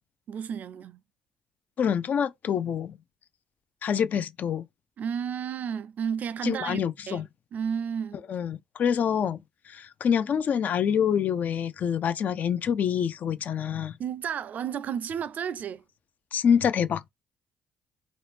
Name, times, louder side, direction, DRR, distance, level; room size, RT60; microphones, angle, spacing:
voice 1, 0.3-1.0 5.0-6.8 7.1-7.2 7.5-8.2 14.0-15.8, right 7 dB, 55° right, 0.4 m, -32 dB
voice 2, 1.8-3.0 3.8-4.6 6.4-7.2 8.3-9.4 9.7-14.0 16.3-17.1, left 8 dB, 55° left, 0.6 m, -26 dB
3.0 x 2.6 x 3.4 m
hypercardioid pair, 55°, 3 cm